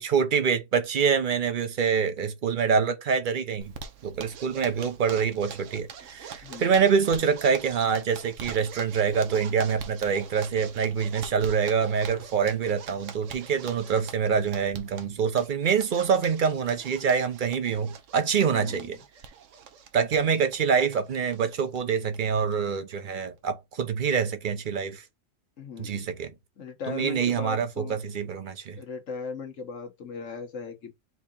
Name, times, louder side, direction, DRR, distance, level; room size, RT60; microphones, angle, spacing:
voice 1, 0.0-3.7 4.0-19.0 19.9-25.0 25.8-26.3 26.9-28.8, right 6 dB, 50° right, 0.7 m, -25 dB
Zipper (clothing), 3.6-21.8 22.1-22.2 22.5-22.6 22.9-23.4, right 7 dB, 80° right, 1.1 m, -44 dB
voice 2, 6.4-6.9 18.4-19.0 25.6-26.1 26.6-28.0 28.8-30.9, left 5 dB, 90° left, 1.5 m, -38 dB
4.5 x 2.8 x 3.6 m
omnidirectional pair, 1.3 m